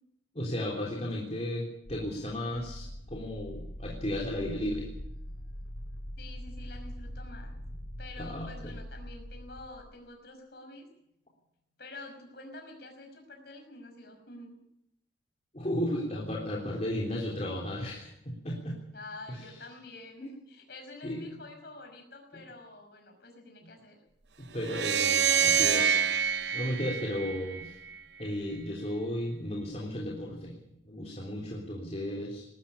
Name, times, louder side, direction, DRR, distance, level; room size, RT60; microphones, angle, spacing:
voice 1, 0.3-4.9 8.2-8.7 15.5-18.8 19.3-19.4 20.2-20.3 21.0-21.3 24.5-26.2 26.5-27.7 28.2-30.5 30.8-32.5, left 1 dB, 35° left, -2 dB, 3.5 m, -34 dB
sound 1, 1.8-10.0, equal, 85° left, 4.3 m, -42 dB
voice 2, 6.2-7.6 8.0-10.9 11.8-14.6 18.9-24.0, left 2 dB, 60° left, 4 dB, 5.7 m, -48 dB
sound 2, 24.6-27.9, right 8 dB, 70° right, 1.0 m, -27 dB
20.0 x 13.5 x 9.9 m, 0.79 s
head